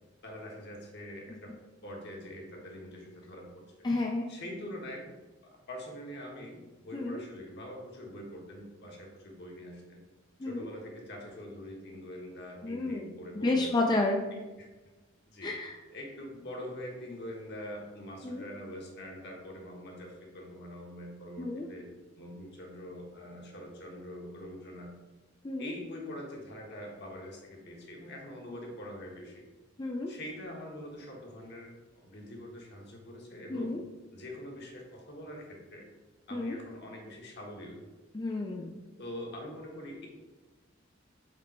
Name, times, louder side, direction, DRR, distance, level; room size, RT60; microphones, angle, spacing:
voice 1, 0.2-1.5 1.8-3.6 4.3-5.1 5.5-10.0 10.4-14.0 14.3-14.7 15.3-15.5 15.9-21.9 22.2-24.9 25.6-29.4 30.1-33.8 34.1-35.9 36.3-37.8 39.0-40.1, left 1 dB, 55° left, 0 dB, 1.3 m, -44 dB
voice 2, 3.8-4.3 6.9-7.2 10.4-10.7 12.6-14.2 15.4-15.8 18.2-18.5 21.4-21.7 25.4-25.7 29.8-30.1 33.5-33.8 36.3-36.6 38.1-38.8, left 2 dB, 20° left, 0 dB, 0.4 m, -31 dB
5.2 x 4.2 x 4.3 m, 1.2 s
head